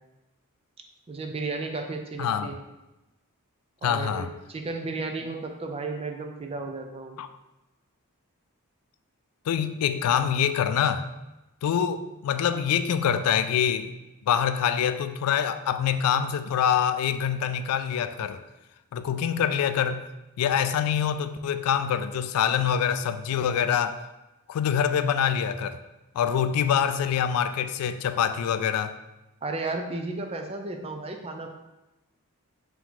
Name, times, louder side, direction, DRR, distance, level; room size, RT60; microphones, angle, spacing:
voice 1, 1.1-2.6 3.8-7.2 29.4-31.5, right 3 dB, 25° right, 4 dB, 0.4 m, -33 dB
voice 2, 2.2-2.5 3.8-4.3 7.2-7.3 9.5-11.1 11.6-13.9 14.3-18.4 18.9-20.1 20.4-24.0 24.5-25.8 26.2-28.9, left 8 dB, 85° left, 13 dB, 0.3 m, -25 dB
4.7 x 2.7 x 3.7 m, 1.0 s
head